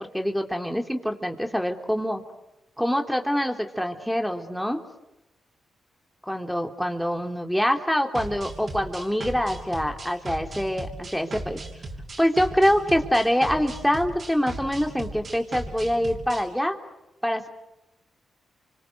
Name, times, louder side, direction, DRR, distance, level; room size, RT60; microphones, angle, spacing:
voice 1, 0.0-2.2 2.8-4.8 6.3-11.6 12.2-16.8 17.2-17.5, equal, ahead, 4 dB, 3.4 m, -25 dB
sound 1, 8.1-16.4, right 2 dB, 50° right, 6.5 m, -37 dB
29.5 x 25.0 x 8.1 m, 0.94 s
supercardioid pair, 45°, 0 cm